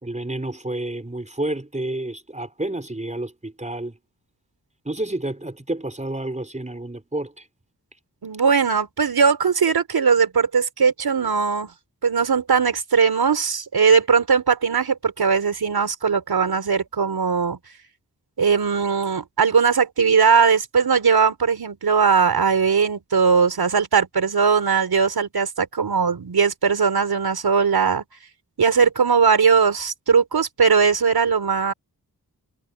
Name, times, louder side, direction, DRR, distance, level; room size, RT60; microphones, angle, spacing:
voice 1, 0.0-4.0 4.8-7.5, right 1 dB, 20° right, 4.7 m, -30 dB
voice 2, 8.2-11.7 12.0-17.6 18.4-28.0 28.6-31.7, right 6 dB, 75° right, 3.9 m, -19 dB
cardioid pair, 45°, 37 cm